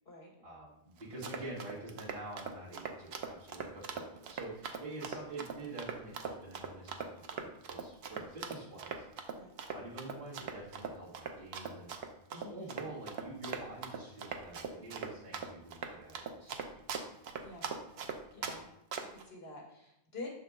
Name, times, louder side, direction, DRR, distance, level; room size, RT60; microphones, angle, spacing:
voice 1, 0.4-9.2 9.7-11.9 12.3-16.7, right 2 dB, 60° right, -6 dB, 1.9 m, -47 dB
Run, 1.0-18.6 18.9-19.2, right 6 dB, 85° right, 0.9 m, -41 dB
voice 2, 12.4-12.8 17.4-17.7 18.3-18.7 19.1-20.3, left 2 dB, 80° left, -1 dB, 1.9 m, -47 dB
6.6 x 4.4 x 3.6 m, 0.80 s
omnidirectional pair, 1.0 m